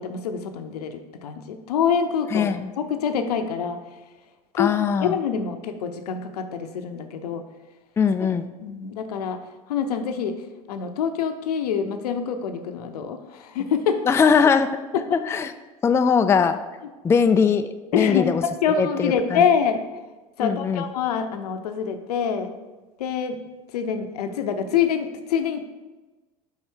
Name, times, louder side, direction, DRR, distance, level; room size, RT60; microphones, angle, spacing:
voice 1, 0.0-2.5 2.8-3.8 4.5-7.4 8.6-9.4 9.7-10.4 10.7-14.0 14.9-15.0 17.9-19.8 20.4-22.5 23.0-23.4 23.7-25.6, left 7 dB, 85° left, 8 dB, 0.7 m, -25 dB
voice 2, 2.3-2.7 4.6-5.2 8.0-8.5 14.1-14.8 15.1-15.5 15.8-16.6 17.0-18.4 18.8-19.5 20.4-20.9, left 6 dB, 15° left, 10 dB, 0.3 m, -20 dB
5.6 x 4.7 x 4.4 m, 1.2 s
hypercardioid pair, 85°, 20 cm